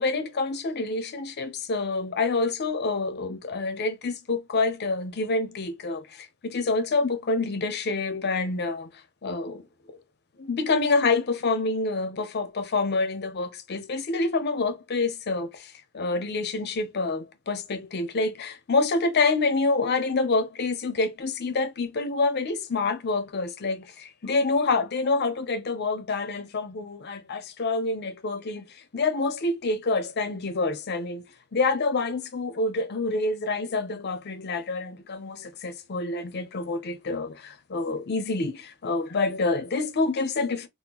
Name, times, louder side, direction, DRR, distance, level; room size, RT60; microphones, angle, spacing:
voice 1, 0.0-8.9 9.2-9.7 10.4-31.2 31.5-40.7, left 3 dB, 45° left, 0.5 m, -27 dB
2.9 x 2.1 x 3.5 m
head